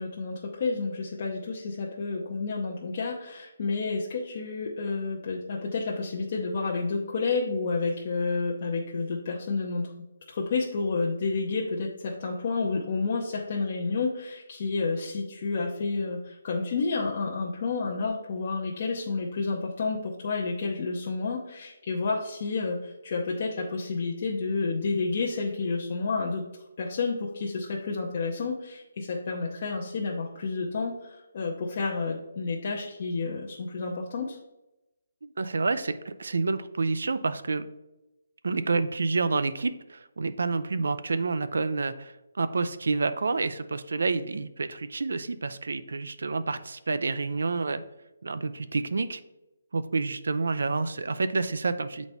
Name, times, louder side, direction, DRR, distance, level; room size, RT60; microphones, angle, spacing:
voice 1, 0.0-9.9 10.3-26.4 26.8-34.4, left 4 dB, 40° left, -2 dB, 0.7 m, -30 dB
voice 2, 35.4-37.7 38.4-47.8 48.2-49.2 49.7-52.0, right 3 dB, 75° right, 12 dB, 0.4 m, -28 dB
7.1 x 4.1 x 3.4 m, 0.97 s
hypercardioid pair, 165°, 0 cm